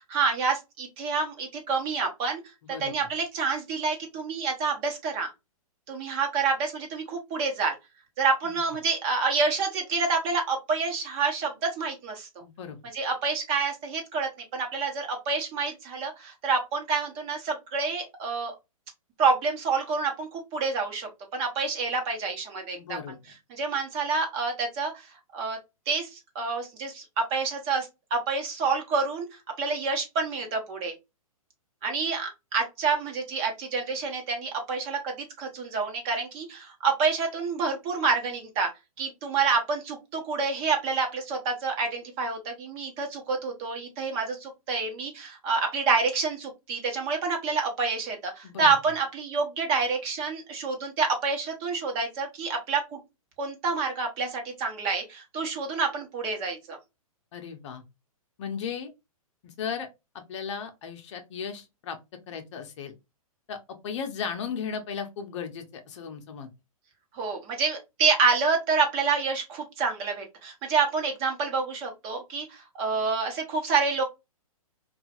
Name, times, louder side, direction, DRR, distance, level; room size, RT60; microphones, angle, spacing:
voice 1, 0.0-2.4 2.8-5.3 5.9-7.7 8.2-12.4 12.9-18.5 19.2-23.0 23.5-25.1 25.3-25.6 25.9-27.0 27.3-29.3 29.6-30.9 31.8-35.1 35.4-38.7 39.0-53.0 53.4-56.8 67.1-74.0, right 4 dB, 30° right, 0.9 m, -28 dB
voice 2, 2.6-2.9 8.4-8.6 12.4-12.8 22.8-23.2 48.4-48.8 57.3-57.8 58.4-58.9 59.4-59.9 60.1-62.0 62.3-62.9 63.5-63.6 63.8-66.5, left 6 dB, 55° left, 0.8 m, -36 dB
2.9 x 2.4 x 2.8 m
hypercardioid pair, 135°, 19 cm